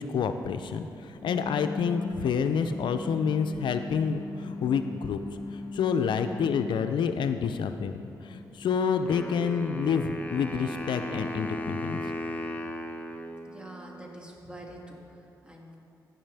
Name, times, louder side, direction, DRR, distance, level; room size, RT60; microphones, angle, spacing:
voice 1, 0.0-5.2 5.5-7.9 8.2-12.0, left 6 dB, 75° left, 8 dB, 0.4 m, -28 dB
sound 1, 1.2-12.0, left 3 dB, 50° left, 0.9 m, -41 dB
Wind instrument woodwind instrument, 9.1-14.1, equal, 20° left, 0.8 m, -36 dB
voice 2, 13.5-15.8, right 1 dB, 10° right, -1 dB, 1.8 m, -46 dB
14.5 x 5.6 x 3.4 m, 2.7 s
supercardioid pair, 55°, 8 cm